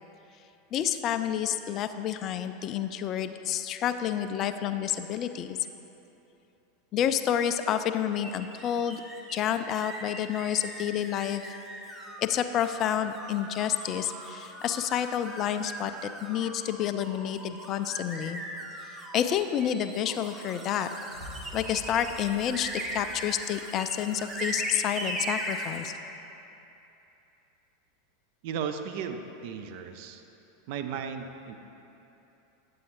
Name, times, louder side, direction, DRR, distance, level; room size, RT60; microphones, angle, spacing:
voice 1, 0.7-5.6 6.9-9.0 9.3-11.6 12.2-18.4 19.1-20.9 21.5-25.9, left 9 dB, 35° left, 10 dB, 0.3 m, -29 dB
sound 1, 8.2-25.9, right 1 dB, 20° right, 0.9 m, -39 dB
Boom, 21.1-24.1, equal, 85° right, 1.8 m, -47 dB
voice 2, 28.4-30.2 30.7-31.6, right 7 dB, 50° right, 7 dB, 0.5 m, -35 dB
9.3 x 7.7 x 3.0 m, 3.0 s
figure-of-eight pair, 85°, 0 cm